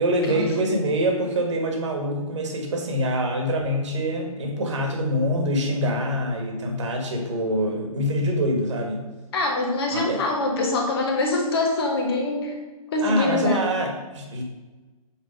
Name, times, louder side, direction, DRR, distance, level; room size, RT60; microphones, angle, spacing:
voice 1, 0.0-9.0 9.9-10.2 13.0-14.4, equal, 50° right, 2 dB, 1.5 m, -25 dB
voice 2, 9.3-12.6 12.9-13.6, left 2 dB, 40° left, 1 dB, 1.4 m, -24 dB
6.0 x 4.4 x 5.1 m, 1.2 s
figure-of-eight pair, 135°, 19 cm